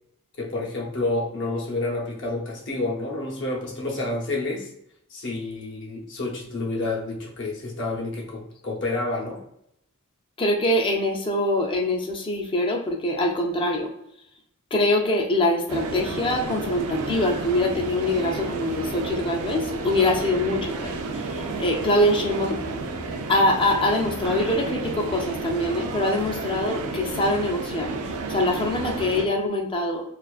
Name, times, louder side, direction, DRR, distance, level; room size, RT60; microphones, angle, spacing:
voice 1, 0.4-4.7 5.1-9.4, left 2 dB, 55° left, -2 dB, 0.7 m, -29 dB
voice 2, 10.4-13.9 14.7-20.9 21.6-22.6 23.3-27.9 28.3-30.0, left 1 dB, 25° left, 2 dB, 0.3 m, -24 dB
sound 1, 15.7-29.3, right 3 dB, 80° right, 0.4 m, -31 dB
2.4 x 2.4 x 2.3 m, 0.76 s
head